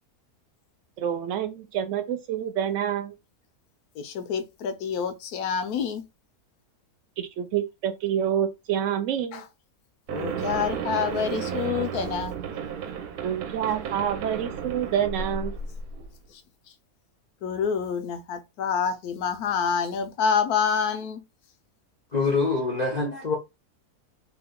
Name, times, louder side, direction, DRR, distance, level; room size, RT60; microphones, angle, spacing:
voice 1, 1.0-3.1 7.2-9.4 13.2-15.5, right 9 dB, 60° right, 0.9 m, -27 dB
voice 2, 4.0-6.0 9.3-9.4 10.1-12.3 17.4-21.2, left 6 dB, 80° left, 1.1 m, -27 dB
sound 1, 10.1-16.1, right 7 dB, 80° right, 1.1 m, -33 dB
voice 3, 22.1-23.4, left 3 dB, 50° left, 0.5 m, -25 dB
2.9 x 2.4 x 3.5 m
omnidirectional pair, 1.6 m